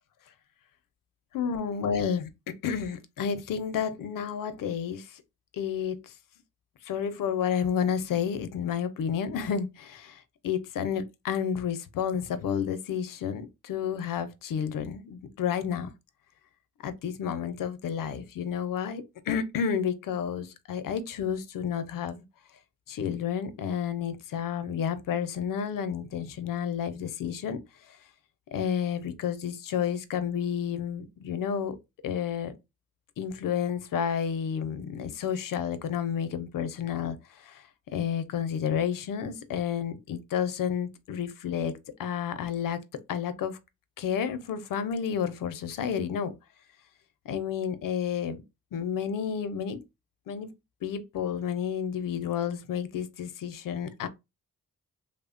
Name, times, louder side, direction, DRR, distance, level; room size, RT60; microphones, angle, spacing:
voice 1, 1.3-5.1 5.5-6.1 6.9-15.9 16.8-22.2 22.9-27.6 28.5-31.8 32.0-32.5 33.2-37.2 37.4-37.6 37.9-42.8 43.1-43.6 44.0-46.3 47.3-48.4 48.7-49.8 50.3-50.5 50.8-54.1, left 7 dB, 80° left, 0.5 m, -31 dB
3.1 x 2.1 x 2.4 m
wide cardioid pair, 110°, 33 cm